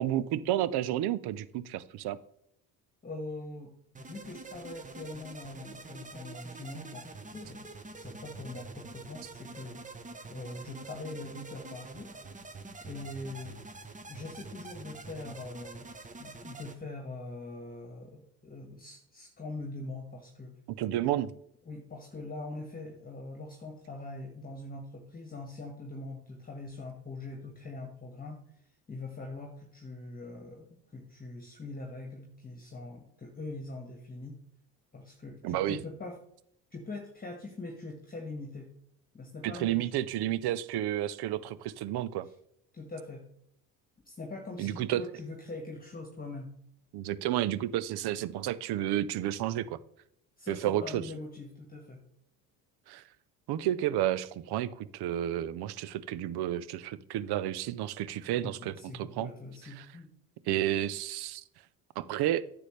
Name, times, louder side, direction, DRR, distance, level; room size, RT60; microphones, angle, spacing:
voice 1, 0.0-2.2 20.7-21.3 35.4-35.8 39.4-42.3 44.6-45.0 46.9-49.8 50.5-51.1 52.9-53.0 53.5-59.3 59.8-59.9 60.5-61.4 62.0-62.4, right 12 dB, 65° right, 17 dB, 0.7 m, -31 dB
voice 2, 3.0-7.1 7.3-7.6 7.9-9.8 10.3-12.1 12.8-13.6 14.1-15.9 16.2-20.5 21.6-28.4 28.9-34.4 34.9-36.2 36.7-38.7 39.1-39.9 42.2-42.3 42.7-43.2 44.0-46.5 50.4-52.0 58.4-60.1, left 2 dB, 20° left, 1 dB, 1.6 m, -43 dB
sound 1, 3.9-16.7, right 3 dB, 20° right, 1.0 m, -46 dB
9.8 x 7.0 x 3.3 m, 0.71 s
supercardioid pair, 75°, 42 cm